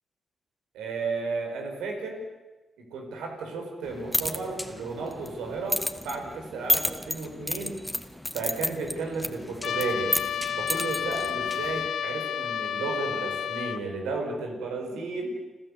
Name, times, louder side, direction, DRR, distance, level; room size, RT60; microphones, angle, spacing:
voice 1, 0.7-2.2 2.8-7.8 8.3-10.1 10.6-15.3, right 3 dB, 85° right, 3 dB, 4.8 m, -33 dB
sound 1, 3.8-11.9, left 1 dB, 5° left, 2.0 m, -32 dB
Trumpet, 9.6-13.8, left 9 dB, 75° left, 0.8 m, -31 dB
30.0 x 13.0 x 8.2 m, 1.2 s
supercardioid pair, 45°, 0 cm